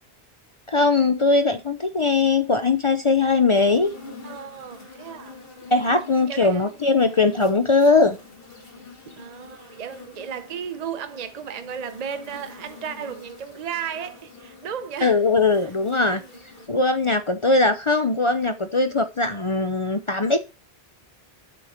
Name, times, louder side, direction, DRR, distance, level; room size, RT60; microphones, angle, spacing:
voice 1, 0.7-3.9 5.7-8.2 15.0-16.2 16.7-20.4, left 3 dB, 35° left, 0.5 m, -20 dB
sound 1, 3.5-16.7, left 3 dB, 60° left, 2.5 m, -46 dB
voice 2, 4.2-5.4 5.9-6.7 9.2-15.2 16.1-16.8, right 7 dB, 40° right, 0.8 m, -35 dB
8.4 x 6.4 x 4.4 m
omnidirectional pair, 1.1 m